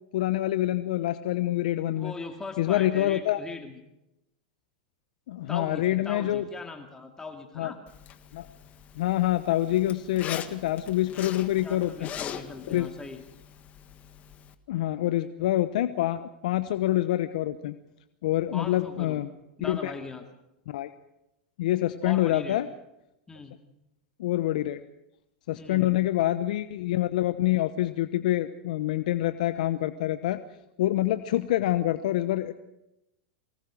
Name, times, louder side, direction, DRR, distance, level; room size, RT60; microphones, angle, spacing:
voice 1, 0.1-2.1 2.6-3.4 5.3-6.5 7.6-7.7 8.3-8.5 9.0-12.1 12.7-12.9 14.7-17.7 18.2-19.3 19.6-19.9 20.7-20.9 21.6-22.7 24.2-24.8 25.5-30.4 30.8-32.5, left 14 dB, 70° left, 11 dB, 0.9 m, -26 dB
voice 2, 2.0-3.8 5.5-7.8 11.6-13.2 18.5-19.2 19.6-20.2 22.0-22.6 23.3-23.6 25.5-25.9, left 3 dB, 15° left, 4 dB, 2.3 m, -40 dB
Zipper (clothing), 7.9-14.5, left 9 dB, 35° left, 1.7 m, -42 dB
23.5 x 18.5 x 6.4 m, 0.90 s
hypercardioid pair, 110°, 4 cm